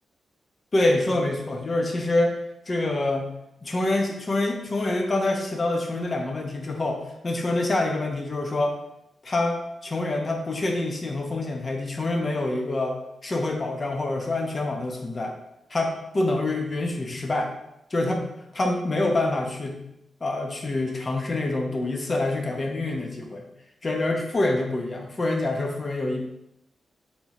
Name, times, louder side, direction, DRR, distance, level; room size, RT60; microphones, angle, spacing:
voice 1, 0.7-2.4 2.7-3.3 3.6-8.8 9.2-13.0 13.2-15.3 15.7-17.5 17.9-18.3 18.5-19.8 20.2-23.5 23.8-26.2, left 2 dB, 40° left, 2 dB, 0.9 m, -26 dB
3.9 x 3.8 x 3.0 m, 0.83 s
cardioid pair, 60°, 0 cm